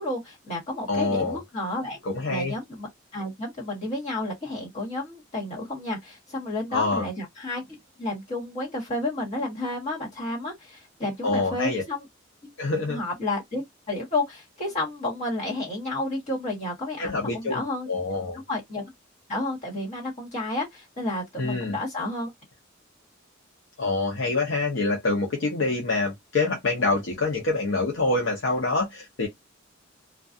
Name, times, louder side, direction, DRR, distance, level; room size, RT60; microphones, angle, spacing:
voice 1, 0.0-2.0 2.3-7.7 8.0-12.1 12.4-12.5 12.9-17.9 18.5-18.8 19.3-22.3, left 2 dB, 35° left, 1.4 m, -31 dB
voice 2, 0.9-1.4 2.1-2.5 6.7-7.1 11.2-11.8 12.6-13.0 17.0-17.6 17.9-18.4 21.4-21.8 23.8-29.3, left 3 dB, 65° left, 0.7 m, -26 dB
2.3 x 2.3 x 2.5 m
head